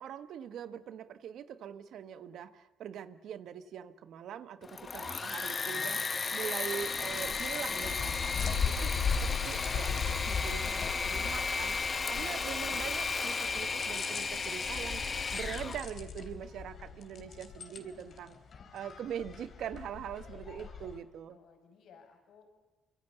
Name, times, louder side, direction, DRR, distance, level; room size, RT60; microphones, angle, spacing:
voice 1, 0.0-8.9 9.2-15.0 15.3-18.4 18.7-21.4, right 9 dB, 75° right, 11 dB, 1.4 m, -42 dB
Engine / Mechanisms, 4.6-15.8, left 4 dB, 35° left, 1.5 m, -34 dB
sound 1, 6.8-21.0, left 6 dB, 55° left, 3.6 m, -38 dB
voice 2, 11.9-12.5 17.7-18.2 21.3-22.5, left 6 dB, 75° left, 5 dB, 5.5 m, -59 dB
25.5 x 24.5 x 7.1 m, 1.2 s
cardioid pair, 90°, 0 cm